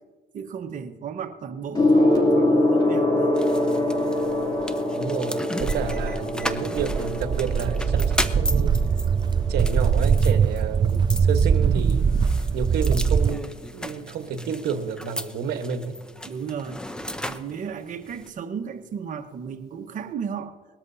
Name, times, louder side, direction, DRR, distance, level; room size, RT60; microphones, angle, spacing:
voice 1, 0.3-3.4 16.2-16.8 17.2-20.6, right 7 dB, 50° right, 6 dB, 1.2 m, -34 dB
Gong, 1.7-11.5 12.5-12.7, left 1 dB, 25° left, 2.7 m, -25 dB
sound 1, 3.3-18.3, left 1 dB, 5° left, 0.7 m, -36 dB
voice 2, 5.0-8.7 9.5-12.0 12.5-16.0, right 6 dB, 75° right, 8 dB, 1.3 m, -30 dB
Walk footsteps, 5.6-13.3, right 6 dB, 25° right, 0.4 m, -22 dB
20.0 x 13.5 x 2.7 m, 1.5 s
cardioid pair, 110°, 17 cm